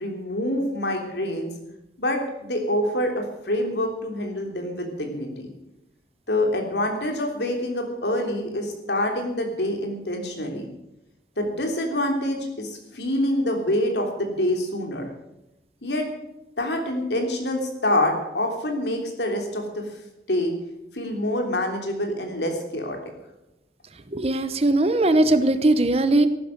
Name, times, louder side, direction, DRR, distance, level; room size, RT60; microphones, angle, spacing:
voice 1, 0.0-1.5 2.0-5.5 6.3-10.7 11.4-15.1 15.8-16.1 16.6-19.8 20.3-20.5 20.9-23.0, left 1 dB, 75° left, 3 dB, 3.4 m, -26 dB
voice 2, 24.1-26.3, right 2 dB, 35° right, 12 dB, 0.9 m, -19 dB
14.0 x 12.0 x 6.5 m, 0.91 s
head